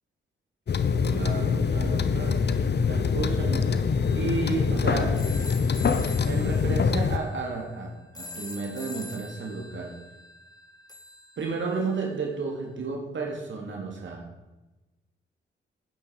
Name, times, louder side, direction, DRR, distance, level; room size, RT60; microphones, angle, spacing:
sound 1, 0.7-7.2, left 5 dB, 55° left, 0.9 m, -24 dB
voice 1, 1.1-2.4 2.9-3.7 4.1-5.2 6.3-9.9 11.4-14.2, right 4 dB, 65° right, 0 dB, 2.7 m, -32 dB
sound 2, 4.0-12.1, left 2 dB, 20° left, 2.0 m, -45 dB
12.0 x 9.8 x 4.8 m, 1.1 s
supercardioid pair, 50°, 21 cm